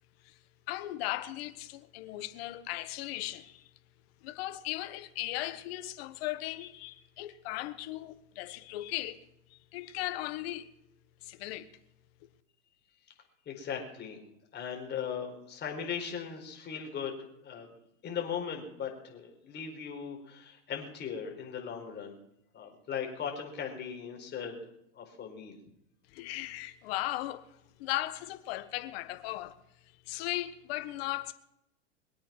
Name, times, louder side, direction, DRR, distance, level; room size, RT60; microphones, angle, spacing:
voice 1, 0.7-3.7 4.2-9.2 9.5-10.7 11.2-11.7 26.1-27.5 27.8-29.6 30.1-31.3, left 16 dB, 60° left, 1.5 m, -37 dB
voice 2, 13.5-14.2 14.5-17.7 18.0-22.2 22.5-24.7 24.9-25.6, left 7 dB, 30° left, 4.6 m, -38 dB
23.0 x 8.7 x 6.0 m
hypercardioid pair, 115°, 34 cm